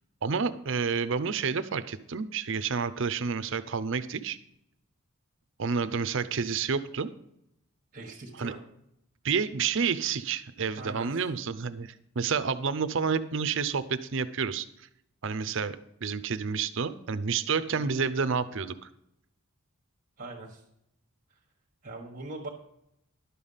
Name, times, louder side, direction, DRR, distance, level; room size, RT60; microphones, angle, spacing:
voice 1, 0.2-4.4 5.6-7.1 8.4-8.5 9.2-14.7 15.2-18.9, right 5 dB, 60° right, 14 dB, 0.6 m, -29 dB
voice 2, 7.9-8.6 10.8-11.2 17.7-18.0 20.2-20.6 21.8-22.5, right 2 dB, 40° right, 0 dB, 1.3 m, -41 dB
11.5 x 6.9 x 5.6 m, 0.77 s
head